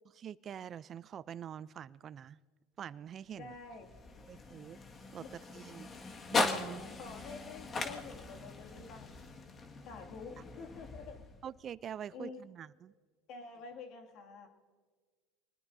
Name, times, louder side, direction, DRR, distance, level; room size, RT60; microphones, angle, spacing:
voice 1, 0.1-2.4 2.8-3.5 4.3-4.8 5.1-5.9 6.3-6.9 11.4-12.9, right 9 dB, 40° right, 19 dB, 0.5 m, -45 dB
voice 2, 3.3-3.9 5.2-5.3 7.0-9.1 9.9-11.2 12.1-12.4 13.3-14.5, left 4 dB, 60° left, 2 dB, 2.3 m, -48 dB
sound 1, 3.3-11.6, left 3 dB, 35° left, 1.9 m, -39 dB
26.5 x 20.0 x 2.7 m, 1.5 s
hypercardioid pair, 90°, 0 cm